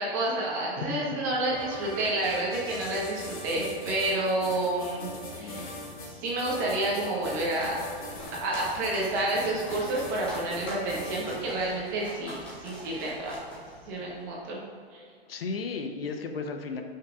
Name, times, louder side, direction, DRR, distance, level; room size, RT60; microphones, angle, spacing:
voice 1, 0.0-5.1 5.4-5.7 6.1-7.7 8.3-13.4 13.9-14.6 14.9-15.0, right 2 dB, 20° right, -4 dB, 1.1 m, -29 dB
sound 1, 1.5-11.5, left 1 dB, 35° left, 1.8 m, -42 dB
voice 2, 5.4-5.7 15.3-16.8, left 4 dB, 65° left, 5 dB, 0.9 m, -34 dB
sound 2, 7.4-14.2, equal, 10° left, 0.4 m, -43 dB
13.5 x 5.7 x 2.4 m, 2.2 s
hypercardioid pair, 175°, 32 cm